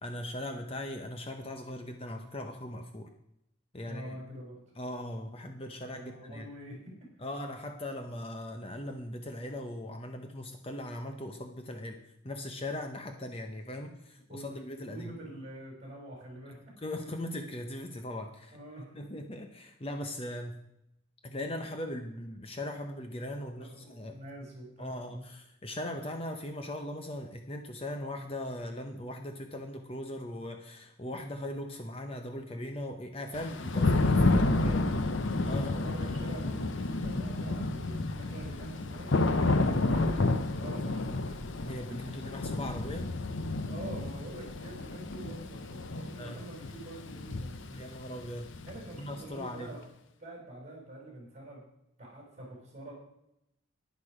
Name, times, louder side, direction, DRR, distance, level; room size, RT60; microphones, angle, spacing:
voice 1, 0.0-3.1 3.7-4.2 4.8-6.5 7.2-12.0 12.2-15.1 16.8-18.6 18.9-20.6 21.2-24.2 24.8-34.8 35.4-36.0 39.6-40.2 41.6-43.1 46.2-46.4 47.8-49.7, left 1 dB, 25° left, 5 dB, 0.8 m, -39 dB
voice 2, 3.8-4.6 5.9-7.0 14.3-14.6 14.9-16.7 17.0-17.2 18.5-19.0 23.3-25.2 34.3-34.9 35.5-40.3 40.6-41.4 42.2-42.5 43.6-47.9 48.7-49.8 50.2-51.6 52.0-52.9, right 1 dB, 35° right, -2 dB, 5.1 m, -46 dB
Thunder / Rain, 33.3-49.1, left 2 dB, 65° left, 0.7 m, -30 dB
11.0 x 10.5 x 5.0 m, 0.81 s
head